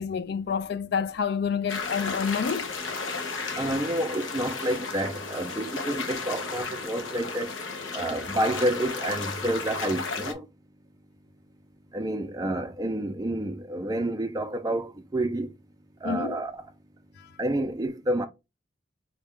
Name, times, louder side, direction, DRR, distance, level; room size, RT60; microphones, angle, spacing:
voice 1, 0.0-2.7 16.0-16.4 17.2-17.3, left 6 dB, 55° left, 0.3 m, -28 dB
sound 1, 1.7-10.3, left 4 dB, 90° left, 0.8 m, -34 dB
voice 2, 3.6-7.5 7.9-10.4 11.9-15.5 16.0-16.6 17.4-18.3, right 1 dB, 20° right, 0.4 m, -29 dB
4.0 x 2.3 x 3.5 m
head